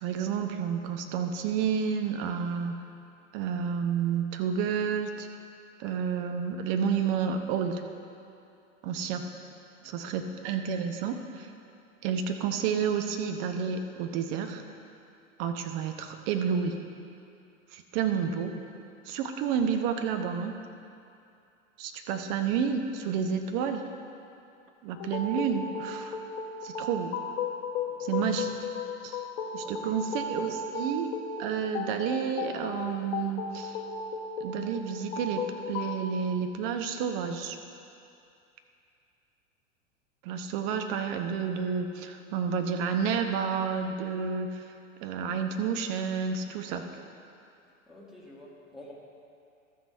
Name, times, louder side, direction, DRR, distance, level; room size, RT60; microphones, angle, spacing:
voice 1, 0.0-2.8 3.3-5.3 5.8-7.8 8.8-9.2 9.8-11.5 12.0-14.6 15.4-16.8 17.7-18.5 19.1-20.5 21.8-23.9 24.8-26.2 26.6-27.1 28.0-28.5 29.0-29.2 29.5-31.1 31.4-33.8 34.4-37.6 40.2-44.7 45.0-46.8, right 7 dB, 45° right, 6 dB, 0.9 m, -30 dB
voice 2, 9.8-10.4 27.9-28.3 29.6-30.3 47.9-48.9, left 1 dB, ahead, -7 dB, 2.1 m, -51 dB
sound 1, 25.0-36.0, left 4 dB, 50° left, 1.0 m, -35 dB
13.0 x 6.2 x 4.4 m, 2.6 s
figure-of-eight pair, 90°, 39 cm